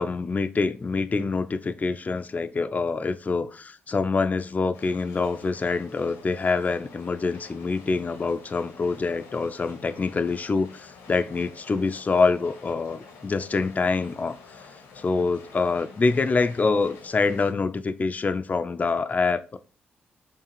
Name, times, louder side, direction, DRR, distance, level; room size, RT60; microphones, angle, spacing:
voice 1, 0.0-14.3 15.0-19.6, left 4 dB, 30° left, 0.3 m, -25 dB
sound 1, 4.7-17.5, left 4 dB, 85° left, 0.9 m, -49 dB
4.7 x 2.4 x 3.0 m
hypercardioid pair, 45°, 5 cm